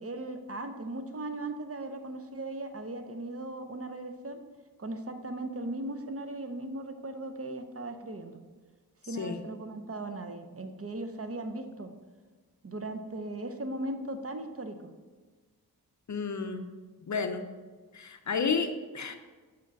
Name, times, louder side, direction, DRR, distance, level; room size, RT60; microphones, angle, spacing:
voice 1, 0.0-4.4 4.8-8.4 9.1-11.9 12.6-14.8, right 2 dB, 40° right, 7 dB, 0.6 m, -38 dB
voice 2, 16.1-16.7 17.1-17.4 17.9-19.2, left 5 dB, 50° left, 8 dB, 0.6 m, -31 dB
5.9 x 4.8 x 5.9 m, 1.4 s
wide cardioid pair, 110°, 38 cm